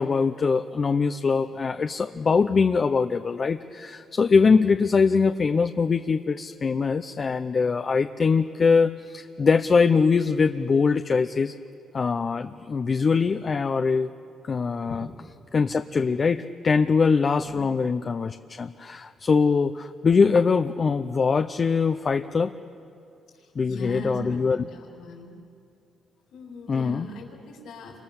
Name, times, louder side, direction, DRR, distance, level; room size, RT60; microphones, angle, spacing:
voice 1, 0.0-11.5 11.9-14.1 14.4-15.1 15.5-22.5 23.6-24.6 26.7-27.1, left 5 dB, 40° left, 7 dB, 0.8 m, -22 dB
voice 2, 23.3-25.3 26.3-28.0, left 2 dB, 75° left, -6 dB, 5.8 m, -40 dB
28.5 x 25.5 x 7.3 m, 2.5 s
cardioid pair, 90°, 0 cm